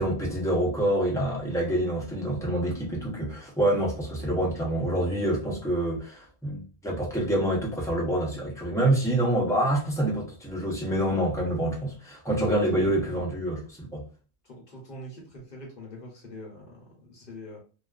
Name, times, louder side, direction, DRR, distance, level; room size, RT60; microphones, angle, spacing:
voice 1, 0.0-14.0, right 1 dB, 5° left, 0.3 m, -26 dB
voice 2, 12.5-13.2 14.5-17.6, left 1 dB, 50° left, 0.8 m, -43 dB
2.4 x 2.2 x 2.3 m
omnidirectional pair, 1.4 m